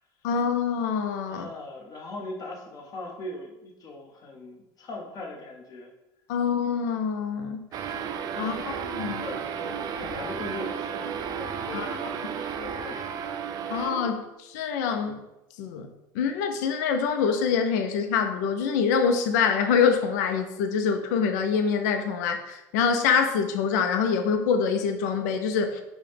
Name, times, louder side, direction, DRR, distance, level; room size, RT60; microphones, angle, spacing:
voice 1, 0.2-1.5 6.3-7.9 8.4-9.2 11.7-11.9 13.7-15.2 15.6-15.9 16.1-25.8, left 6 dB, 80° left, 6 dB, 0.4 m, -25 dB
voice 2, 1.3-5.9 7.9-13.5, left 2 dB, 40° left, 0 dB, 0.9 m, -40 dB
sound 1, 7.7-14.3, right 7 dB, 45° right, 0.3 m, -33 dB
4.7 x 2.1 x 3.3 m, 0.95 s
supercardioid pair, 110°, 9 cm